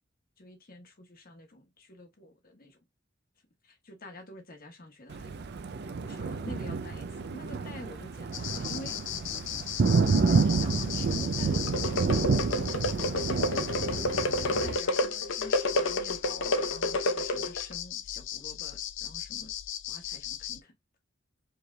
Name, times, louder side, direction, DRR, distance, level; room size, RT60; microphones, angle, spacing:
voice 1, 0.4-2.8 3.6-5.3 6.0-9.0 10.0-12.4 13.9-19.5 19.9-20.7, left 1 dB, 50° left, 1.2 m, -47 dB
Thunder, 5.1-14.8, right 4 dB, 55° right, 0.4 m, -29 dB
sound 1, 8.3-20.6, left 12 dB, 65° left, 0.4 m, -37 dB
sound 2, 11.7-17.7, left 1 dB, 85° left, 0.8 m, -30 dB
4.9 x 3.3 x 2.2 m
head